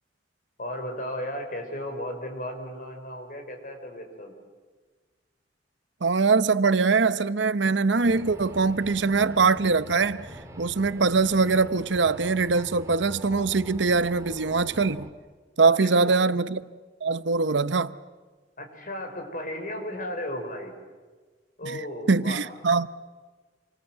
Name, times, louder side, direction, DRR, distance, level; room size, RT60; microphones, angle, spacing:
voice 1, 0.6-4.4 15.7-16.1 18.6-20.8 21.6-22.4, left 1 dB, 50° left, 5.7 m, -35 dB
voice 2, 6.0-10.3 10.6-15.1 15.6-16.7 17.0-17.9 21.6-21.8 22.1-22.9, right 4 dB, 75° right, 0.8 m, -22 dB
sound 1, 8.0-15.1, right 1 dB, 15° right, 2.6 m, -43 dB
28.0 x 25.5 x 7.8 m
head